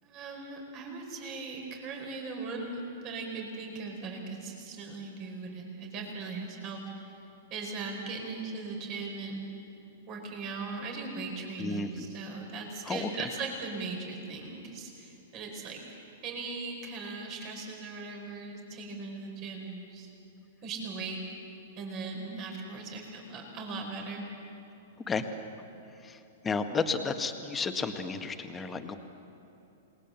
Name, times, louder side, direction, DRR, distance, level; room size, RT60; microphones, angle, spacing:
voice 1, 0.0-7.2 7.5-9.5 10.1-20.1 20.6-21.4 21.8-24.2, right 3 dB, 40° right, 2 dB, 5.0 m, -39 dB
voice 2, 11.6-12.1 12.9-13.3 25.1-25.3 26.0-29.0, left 4 dB, 15° left, 6 dB, 1.8 m, -32 dB
28.0 x 20.5 x 7.2 m, 2.9 s
figure-of-eight pair, 105°, 0 cm